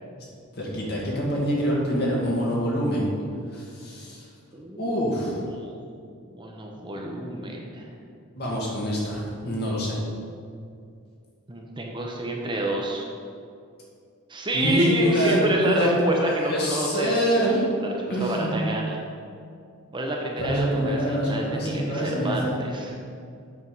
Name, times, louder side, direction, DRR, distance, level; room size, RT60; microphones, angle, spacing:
voice 1, 0.5-3.1 3.5-4.3 4.8-5.4 8.4-10.0 14.5-17.7 18.1-18.5 20.4-22.6, equal, 50° left, -4 dB, 1.9 m, -25 dB
voice 2, 4.5-5.8 6.3-7.9 11.5-13.1 14.3-17.1 17.9-19.0 19.9-22.9, right 1 dB, 20° right, 0 dB, 0.8 m, -28 dB
8.3 x 4.7 x 5.3 m, 2.4 s
head